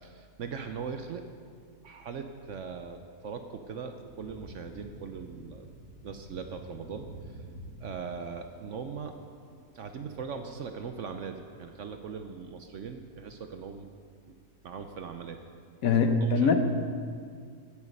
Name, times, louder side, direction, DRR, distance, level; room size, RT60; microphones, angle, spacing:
voice 1, 0.0-1.2 1.8-5.7 6.0-7.4 7.8-9.1 9.7-13.9 14.3-14.4 14.6-15.4 16.2-16.5, right 6 dB, 60° right, 7 dB, 0.9 m, -40 dB
Thunder, 4.0-9.7, right 1 dB, 5° right, 2.7 m, -48 dB
voice 2, 15.8-16.5, left 4 dB, 65° left, 7 dB, 1.2 m, -22 dB
16.5 x 7.2 x 5.3 m, 2.2 s
omnidirectional pair, 1.7 m